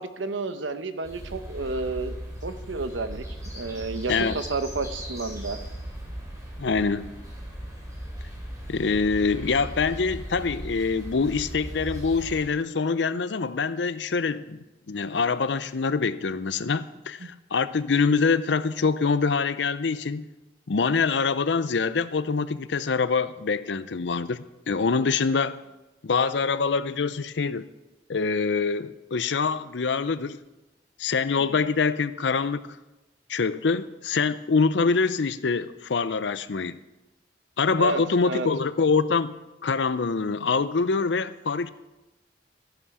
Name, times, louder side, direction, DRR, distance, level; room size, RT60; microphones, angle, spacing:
voice 1, 0.0-2.2 2.4-3.2 3.5-5.6 17.2-17.3 31.4-31.6 37.8-38.5, right 3 dB, 85° right, 10 dB, 0.9 m, -31 dB
sound 1, 1.0-12.4, equal, 20° right, 4.0 m, -38 dB
voice 2, 6.6-7.1 8.7-14.6 14.9-20.3 20.7-25.6 26.0-27.7 28.1-30.4 31.0-32.8 33.3-36.8 37.6-39.3 39.6-41.7, left 4 dB, 75° left, 15 dB, 0.6 m, -25 dB
14.0 x 11.0 x 4.9 m, 1.0 s
head